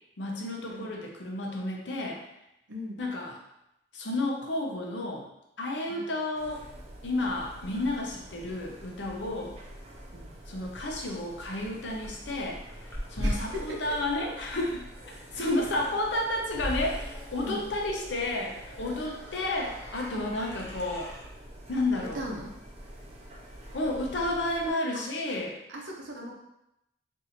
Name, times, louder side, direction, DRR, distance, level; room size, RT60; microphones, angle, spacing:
voice 1, 0.2-2.2 3.0-3.3 3.9-5.3 5.6-6.7 7.0-9.5 10.5-12.6 13.1-14.8 15.3-21.1 21.7-22.2 23.7-25.5, left 2 dB, 80° left, 0 dB, 0.7 m, -31 dB
voice 2, 2.7-3.0 5.9-6.1 10.1-10.3 13.2-14.0 15.1-15.5 17.4-17.6 20.1-20.4 22.1-22.5 24.9-25.0 25.7-26.3, equal, 80° right, 0 dB, 0.7 m, -39 dB
sound 1, 6.3-24.7, equal, 35° right, 0.6 m, -47 dB
sound 2, 10.6-21.2, equal, 15° left, 0.5 m, -40 dB
2.7 x 2.6 x 4.2 m, 0.86 s
head